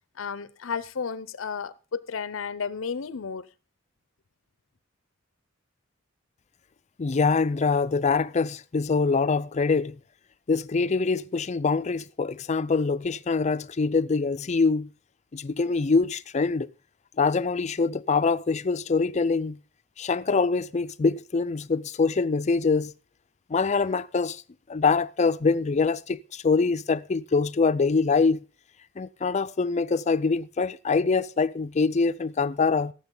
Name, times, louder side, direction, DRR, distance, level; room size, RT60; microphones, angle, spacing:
voice 1, 0.2-3.5, left 6 dB, 80° left, 0.6 m, -33 dB
voice 2, 7.0-10.0 10.5-14.9 15.3-16.7 17.2-19.6 20.0-22.9 23.5-24.4 24.7-28.4 29.0-32.9, left 4 dB, 35° left, 0.4 m, -24 dB
17.5 x 7.7 x 3.8 m
head